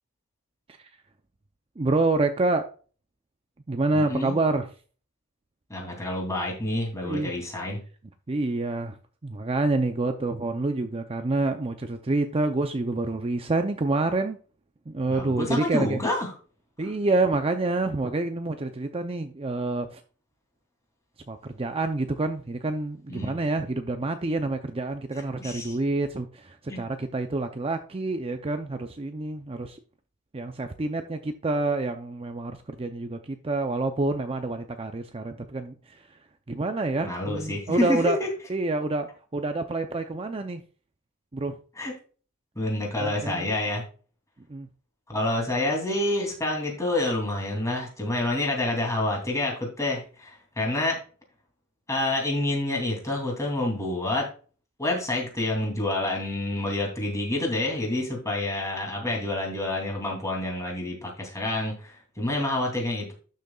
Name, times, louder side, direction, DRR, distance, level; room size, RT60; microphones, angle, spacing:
voice 1, 1.8-2.7 3.7-4.7 7.0-7.3 8.3-9.0 9.2-14.4 14.9-16.0 16.8-20.0 21.3-29.8 30.3-36.2 36.5-38.2 38.5-40.6 41.3-41.6 43.0-43.5 44.5-44.7, right 2 dB, 25° right, 0.6 m, -27 dB
voice 2, 3.9-4.4 5.7-7.8 15.1-16.3 23.1-23.3 25.4-25.8 26.7-26.8 37.0-38.2 41.8-41.9 42.5-43.9 45.1-51.0 51.9-54.3 54.8-63.1, left 2 dB, 15° left, 2.8 m, -28 dB
12.0 x 6.5 x 2.4 m
head